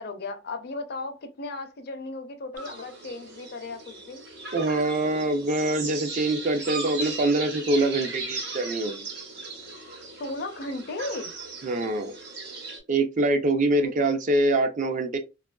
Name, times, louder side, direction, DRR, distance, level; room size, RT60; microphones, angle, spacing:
voice 1, 0.0-4.2 10.1-11.3 13.8-13.9, left 2 dB, 55° left, 0.5 m, -35 dB
sound 1, 2.5-12.8, right 3 dB, 60° right, 0.9 m, -37 dB
voice 2, 4.5-9.1 11.6-12.1 12.9-15.2, right 2 dB, 40° right, 0.4 m, -24 dB
2.9 x 2.4 x 2.2 m
head